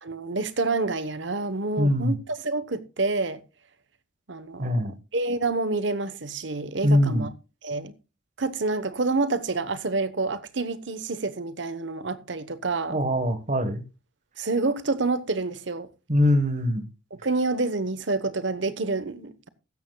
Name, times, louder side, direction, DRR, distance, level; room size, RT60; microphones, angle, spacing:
voice 1, 0.0-2.2 2.4-3.4 4.3-7.3 7.6-7.9 8.4-13.0 14.4-15.9 17.2-19.5, right 3 dB, 65° right, 1.1 m, -28 dB
voice 2, 1.8-2.2 4.6-5.0 6.8-7.3 12.9-13.8 16.1-16.8, left 1 dB, 40° right, 1.4 m, -22 dB
15.5 x 13.0 x 2.3 m
head